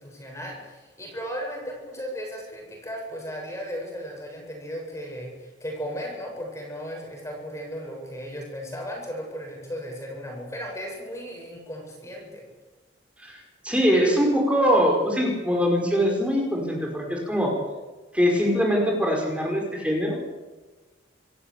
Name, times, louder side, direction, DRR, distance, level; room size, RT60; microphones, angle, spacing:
voice 1, 0.0-12.4, equal, 15° left, 0 dB, 7.5 m, -36 dB
voice 2, 13.2-17.5 18.1-20.2, equal, 5° right, 0 dB, 5.2 m, -23 dB
27.0 x 15.5 x 8.5 m, 1.2 s
head